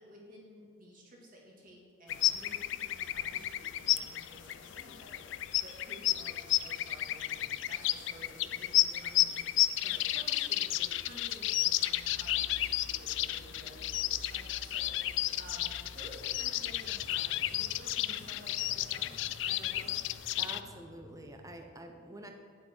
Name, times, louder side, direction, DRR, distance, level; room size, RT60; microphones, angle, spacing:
voice 1, 0.0-9.4 9.8-19.2 19.5-20.0, right 1 dB, 45° right, -2 dB, 2.0 m, -53 dB
sound 1, 2.1-20.6, left 14 dB, 65° left, 0.3 m, -32 dB
sound 2, 10.7-21.6, left 1 dB, 90° left, 0.7 m, -53 dB
voice 2, 20.4-22.3, right 1 dB, 15° right, 4 dB, 0.7 m, -47 dB
8.7 x 7.7 x 4.5 m, 2.3 s
head